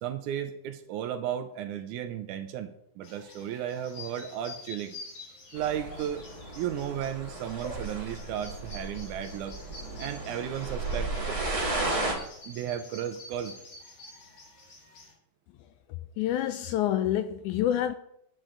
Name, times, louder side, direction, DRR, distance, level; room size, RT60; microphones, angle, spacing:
voice 1, 0.0-5.0 5.5-6.2 6.6-9.6 10.0-11.4 12.5-13.6, right 10 dB, 80° right, 1.9 m, -34 dB
sound 1, 3.0-15.1, left 3 dB, 55° left, 3.4 m, -49 dB
sound 2, 5.5-12.1, right 2 dB, 20° right, 0.9 m, -34 dB
voice 2, 15.6-17.9, left 11 dB, 80° left, 1.8 m, -28 dB
9.0 x 8.9 x 3.8 m
omnidirectional pair, 3.8 m